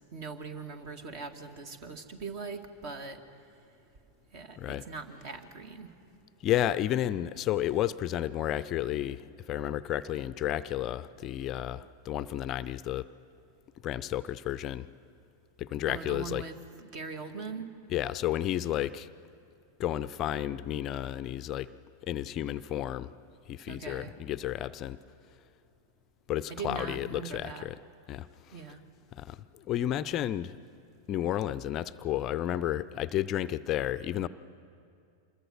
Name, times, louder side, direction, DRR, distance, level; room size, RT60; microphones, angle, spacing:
voice 1, 0.1-3.2 4.3-5.9 15.9-17.7 23.7-24.1 26.5-27.7 28.5-28.8, right 4 dB, 45° right, 8 dB, 2.0 m, -41 dB
voice 2, 6.4-13.1 13.8-14.9 15.6-16.4 17.9-19.1 19.8-21.7 22.0-23.1 23.5-25.0 26.3-27.8 28.1-28.5 29.1-30.6 31.1-34.3, left 12 dB, 35° left, 15 dB, 0.5 m, -32 dB
26.5 x 21.5 x 6.3 m, 2.5 s
figure-of-eight pair, 90°, 0 cm